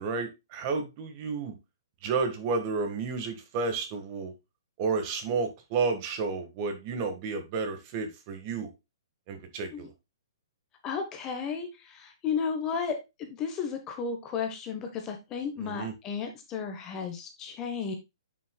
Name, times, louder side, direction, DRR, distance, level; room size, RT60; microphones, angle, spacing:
voice 1, 0.0-1.6 2.0-4.3 4.8-8.7 9.3-9.9 15.6-15.9, right 4 dB, 25° right, 7 dB, 1.5 m, -31 dB
voice 2, 10.8-18.0, left 6 dB, 15° left, 6 dB, 1.0 m, -33 dB
8.9 x 6.1 x 2.2 m, 0.23 s
hypercardioid pair, 170°, 3 cm